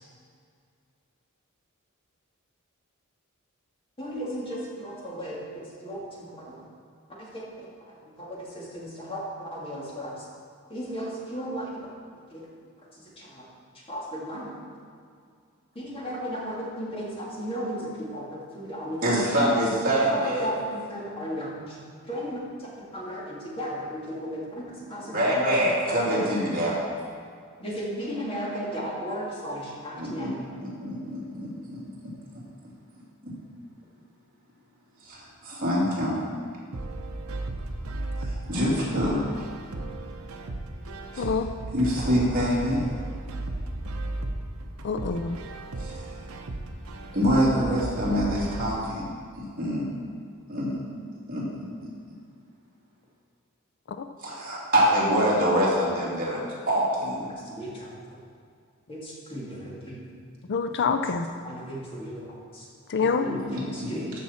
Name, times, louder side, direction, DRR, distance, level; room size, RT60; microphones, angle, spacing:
voice 1, 4.0-6.6 7.2-10.3 10.7-11.7 12.3-12.5 12.9-13.4 13.7-14.6 15.7-19.2 20.1-21.8 22.0-25.4 26.2-26.3 27.6-30.4 45.9-46.0 57.3-58.2 58.9-60.0 61.4-62.1 63.0-64.1, equal, 25° left, -5 dB, 2.1 m, -35 dB
voice 2, 19.0-20.5 25.0-26.7 30.0-30.3 30.6-31.9 33.2-33.3 35.0-36.2 38.2-39.3 41.1-41.3 41.7-42.8 45.8-46.2 47.1-49.1 49.4-49.8 50.5-50.8 51.3-51.7 54.2-57.3 63.0-64.1, equal, 40° right, -7 dB, 2.7 m, -25 dB
sound 1, 36.7-48.7, right 1 dB, 70° right, 0.8 m, -35 dB
voice 3, 41.2-41.5 44.8-45.4 53.9-54.1 60.5-61.2 62.9-63.3, left 5 dB, 55° left, 7 dB, 0.4 m, -26 dB
13.5 x 6.0 x 4.3 m, 2.2 s
head